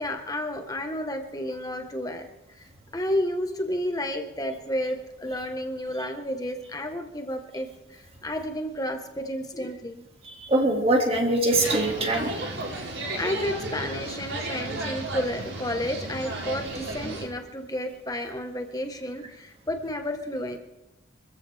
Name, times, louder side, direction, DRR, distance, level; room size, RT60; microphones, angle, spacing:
voice 1, 0.0-2.6 2.9-10.0 13.2-20.6, equal, 20° left, 4 dB, 1.6 m, -31 dB
voice 2, 10.2-12.3, right 1 dB, 30° right, 1 dB, 2.6 m, -23 dB
sound 1, 11.5-17.2, right 2 dB, 85° right, 6.5 m, -33 dB
24.5 x 15.0 x 3.7 m, 0.97 s
head